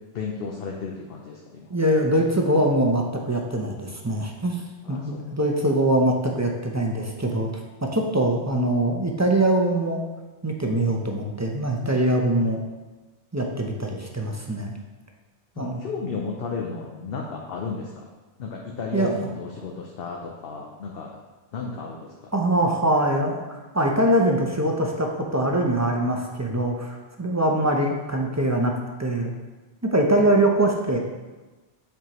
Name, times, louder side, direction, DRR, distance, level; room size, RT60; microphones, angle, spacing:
voice 1, 0.1-1.7 4.8-5.3 15.6-18.1 18.4-21.2 21.5-22.3, left 4 dB, 65° left, -1 dB, 0.8 m, -33 dB
voice 2, 1.7-10.0 10.4-12.6 13.3-14.7 15.6-15.8 18.9-19.1 22.3-28.7 29.0-29.3 29.8-31.0, right 1 dB, 20° right, 0 dB, 0.5 m, -23 dB
7.2 x 4.7 x 3.0 m, 1.2 s
omnidirectional pair, 1.1 m